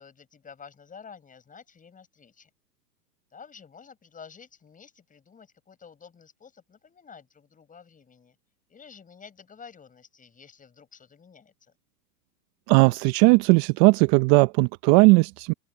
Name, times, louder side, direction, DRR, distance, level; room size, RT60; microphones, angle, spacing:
voice 1, 0.0-2.5 3.3-8.4 8.7-11.7, left 6 dB, 15° left, 6.2 m, -50 dB
voice 2, 12.7-15.5, right 27 dB, 35° right, 0.7 m, -18 dB
hypercardioid pair, 120°, 47 cm